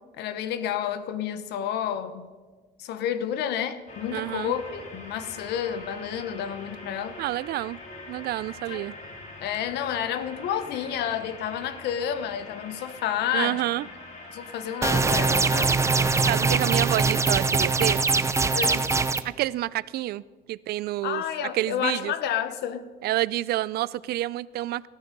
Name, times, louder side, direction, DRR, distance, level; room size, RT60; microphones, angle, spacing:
voice 1, 0.1-2.3 2.8-7.2 8.7-8.9 9.4-13.6 14.3-15.8 18.5-18.9 21.0-22.9, left 9 dB, 80° left, 1.0 m, -30 dB
sound 1, 3.9-16.1, left 2 dB, 45° left, 4.2 m, -43 dB
voice 2, 4.1-4.5 7.2-7.8 8.1-8.9 13.3-13.8 16.2-18.0 19.2-20.2 20.5-21.2 21.5-22.1 23.0-24.9, right 15 dB, 70° right, 0.5 m, -28 dB
sound 2, 14.8-19.2, right 4 dB, 15° right, 0.7 m, -22 dB
19.0 x 13.5 x 5.3 m
cardioid pair, 110°, 17 cm